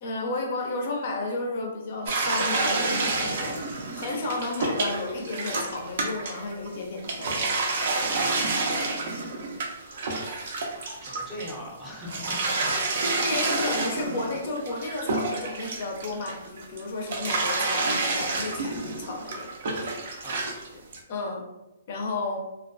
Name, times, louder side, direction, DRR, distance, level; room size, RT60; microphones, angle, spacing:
voice 1, 0.0-7.6 10.2-10.5 13.2-19.5 21.1-21.4 21.9-22.4, left 2 dB, 45° left, 1 dB, 0.5 m, -32 dB
sound 1, 2.1-6.7 7.0-11.6 12.0-16.8 17.1-20.7 20.9-21.0, right 3 dB, 55° right, 0.5 m, -29 dB
voice 2, 8.1-9.0 11.0-12.7 20.2-20.4, left 1 dB, 10° right, -5 dB, 0.6 m, -39 dB
2.2 x 2.2 x 2.4 m, 0.97 s
hypercardioid pair, 160°, 0 cm